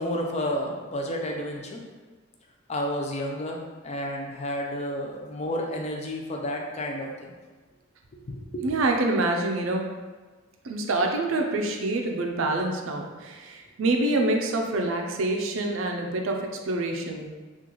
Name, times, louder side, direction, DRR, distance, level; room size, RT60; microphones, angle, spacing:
voice 1, 0.0-1.8 2.7-7.3 8.3-8.7, equal, 30° left, 1 dB, 0.4 m, -31 dB
voice 2, 8.6-9.9 10.6-17.3, right 2 dB, 65° right, 2 dB, 0.4 m, -26 dB
3.7 x 2.4 x 3.0 m, 1.4 s
head